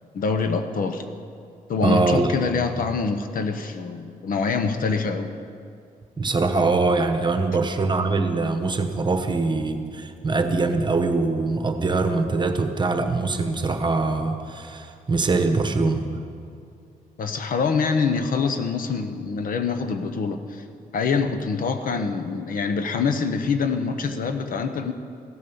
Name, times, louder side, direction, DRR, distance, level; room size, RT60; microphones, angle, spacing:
voice 1, 0.1-1.0 1.7-5.3 17.2-20.6 20.9-24.9, left 5 dB, 65° left, 8 dB, 1.0 m, -25 dB
voice 2, 1.8-2.3 6.2-16.0, right 3 dB, 30° right, 7 dB, 1.1 m, -23 dB
15.0 x 9.3 x 7.0 m, 2.4 s
cardioid pair, 105°, 15 cm